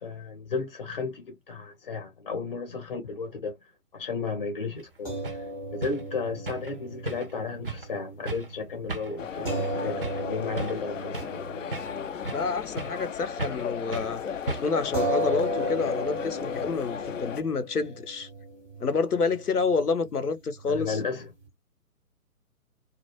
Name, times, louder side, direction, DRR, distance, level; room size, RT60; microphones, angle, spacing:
voice 1, 0.0-11.2 20.7-21.3, left 4 dB, 35° left, 0.8 m, -34 dB
sound 1, 4.8-4.9 5.2-5.4 5.8-6.0 6.5-6.7 7.1-7.4 7.6-7.9 8.3-8.5 8.9-9.2 9.5-9.7 10.0-10.3 10.6-11.4 11.7-12.5 12.8-13.1 13.4-13.7 13.9-14.1 14.5-14.9, right 3 dB, 40° right, 0.4 m, -36 dB
sound 2, 5.1-13.6 13.9-14.0 14.9-21.5, equal, ahead, 0.7 m, -36 dB
sound 3, 9.2-17.4, left 7 dB, 60° left, 0.5 m, -35 dB
voice 2, 12.3-14.2 14.6-18.3 18.8-21.0, left 4 dB, 85° left, 0.8 m, -28 dB
2.3 x 2.1 x 3.0 m
figure-of-eight pair, 145°, 44 cm